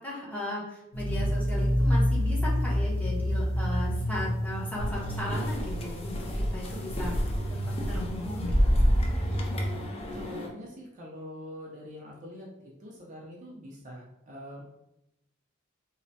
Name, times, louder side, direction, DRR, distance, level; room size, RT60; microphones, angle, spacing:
voice 1, 0.0-8.5, left 1 dB, 10° left, -6 dB, 0.8 m, -37 dB
sound 1, 0.9-9.9, equal, 70° left, 0.6 m, -29 dB
sound 2, 4.8-10.5, equal, 30° left, 0.4 m, -29 dB
voice 2, 10.1-14.6, equal, 35° right, -3 dB, 0.4 m, -44 dB
3.1 x 2.0 x 2.7 m, 0.87 s
head